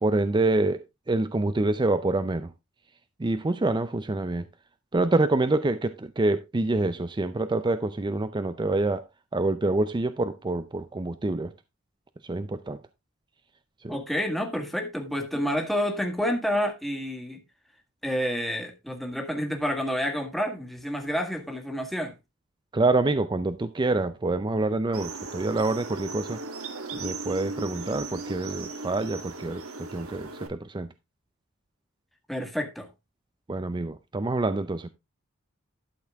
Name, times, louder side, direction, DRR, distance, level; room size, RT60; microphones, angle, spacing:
voice 1, 0.0-2.5 3.2-4.5 4.9-9.0 9.3-11.5 12.2-12.8 13.8-14.0 22.7-26.4 26.9-30.9 33.5-34.9, right 2 dB, 20° right, 0.5 m, -26 dB
voice 2, 13.9-17.4 18.0-22.1 32.3-32.9, equal, ahead, 1.7 m, -29 dB
sound 1, 24.9-30.5, right 3 dB, 85° right, 1.8 m, -37 dB
12.0 x 6.6 x 3.5 m
head